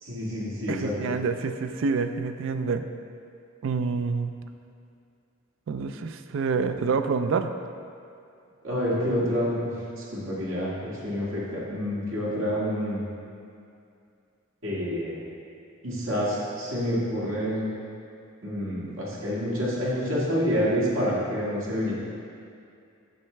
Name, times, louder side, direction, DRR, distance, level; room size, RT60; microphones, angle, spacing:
voice 1, 0.0-1.1 8.6-9.7 10.0-13.0 14.6-15.2 15.8-17.6 18.4-21.9, equal, 85° right, -7 dB, 1.8 m, -28 dB
voice 2, 0.7-2.8 3.6-4.3 5.7-7.5, right 5 dB, 65° right, 9 dB, 0.4 m, -27 dB
7.6 x 6.5 x 3.3 m, 2.5 s
head